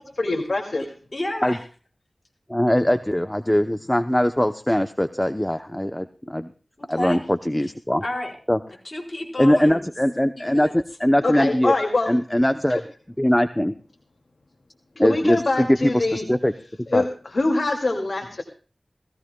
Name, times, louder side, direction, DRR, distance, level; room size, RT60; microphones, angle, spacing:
voice 1, 0.2-0.9 11.2-12.1 12.7-12.8 15.0-16.2 16.9-18.4, left 2 dB, 70° left, 1 dB, 2.3 m, -24 dB
voice 2, 1.1-1.6 6.8-7.2 8.0-8.3 8.8-9.8 10.3-10.7, left 1 dB, 40° left, -2 dB, 4.6 m, -31 dB
voice 3, 2.5-6.5 6.9-8.0 8.5-8.6 9.4-11.7 12.1-12.8 13.2-13.7 15.0-15.7 16.1-16.5 16.9-17.0, equal, 10° left, 9 dB, 0.7 m, -21 dB
20.5 x 16.0 x 2.3 m, 0.39 s
wide cardioid pair, 65°, 0 cm